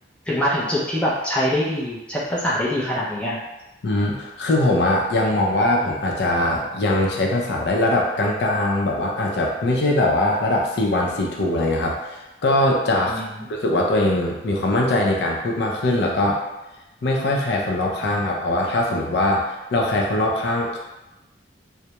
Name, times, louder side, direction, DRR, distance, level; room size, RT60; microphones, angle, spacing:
voice 1, 0.3-3.4 13.1-13.5, equal, 5° left, -6 dB, 0.4 m, -24 dB
voice 2, 3.8-13.2 13.5-16.4 17.0-19.4 19.7-20.8, left 1 dB, 65° left, -1 dB, 0.4 m, -21 dB
2.2 x 2.0 x 2.8 m, 0.99 s
head